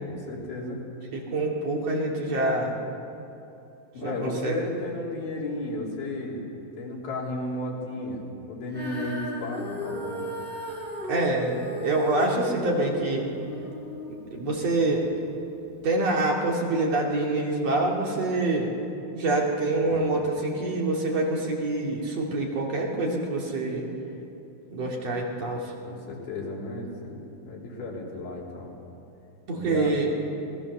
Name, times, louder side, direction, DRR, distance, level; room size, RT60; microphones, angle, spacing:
voice 1, 0.1-0.8 3.9-6.4 6.8-8.2 8.5-10.3 19.8-20.1 25.8-28.7 29.5-30.0, left 2 dB, 90° left, -3 dB, 5.3 m, -34 dB
voice 2, 1.1-2.7 4.0-4.5 11.1-13.3 14.3-15.0 15.8-18.7 19.1-23.9 24.7-25.7 29.5-30.1, right 2 dB, 45° right, -2 dB, 3.5 m, -26 dB
Female singing, 8.7-15.0 15.7-15.8, equal, ahead, 6.2 m, -36 dB
27.5 x 19.5 x 6.8 m, 2.8 s
omnidirectional pair, 4.3 m